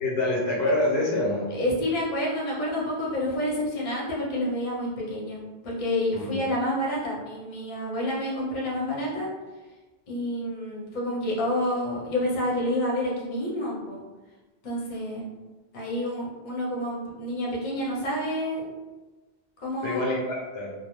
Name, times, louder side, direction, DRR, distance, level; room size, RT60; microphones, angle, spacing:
voice 1, 0.0-1.5 6.1-6.4 19.8-20.7, left 1 dB, 80° left, -3 dB, 0.9 m, -26 dB
voice 2, 1.5-9.3 10.1-14.0 14.6-15.2 15.7-18.7 19.6-20.1, left 1 dB, 50° left, -4 dB, 0.8 m, -29 dB
2.3 x 2.2 x 3.0 m, 1.2 s
omnidirectional pair, 1.0 m